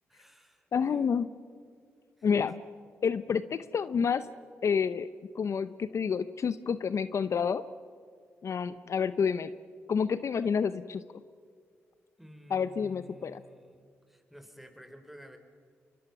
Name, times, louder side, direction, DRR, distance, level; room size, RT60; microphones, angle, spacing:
voice 1, 0.1-1.1 2.2-2.5 3.3-3.4 12.2-15.4, equal, 5° right, 6 dB, 4.1 m, -53 dB
voice 2, 0.7-1.3 2.2-2.5 3.0-4.3 4.6-5.1 5.3-7.6 8.4-9.5 9.9-11.0 12.5-13.4, left 6 dB, 60° left, 14 dB, 0.7 m, -29 dB
26.5 x 22.0 x 6.0 m, 2.1 s
supercardioid pair, 45°, 6 cm